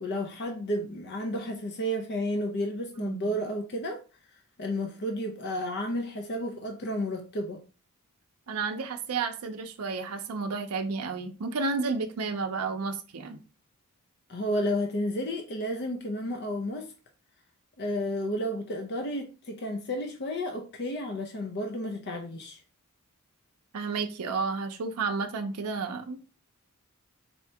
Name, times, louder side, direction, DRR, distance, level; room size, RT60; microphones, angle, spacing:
voice 1, 0.0-4.0 4.6-7.6 14.3-16.9 17.8-22.6, equal, 50° left, 0.6 m, -32 dB
voice 2, 3.0-3.3 8.5-13.4 23.7-26.4, right 4 dB, 80° right, 0.5 m, -32 dB
4.3 x 2.7 x 3.3 m
head